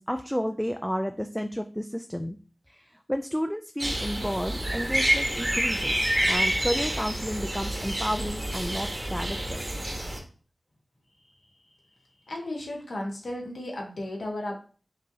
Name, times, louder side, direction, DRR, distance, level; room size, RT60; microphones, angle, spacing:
voice 1, 0.0-2.4 2.7-9.6, equal, 5° left, 6 dB, 0.3 m, -31 dB
sound 1, 3.8-10.2, right 1 dB, 35° right, 1.1 m, -28 dB
voice 2, 12.3-14.6, left 1 dB, 75° left, -1 dB, 1.3 m, -34 dB
5.3 x 2.8 x 2.7 m, 0.38 s
cardioid pair, 45°, 0 cm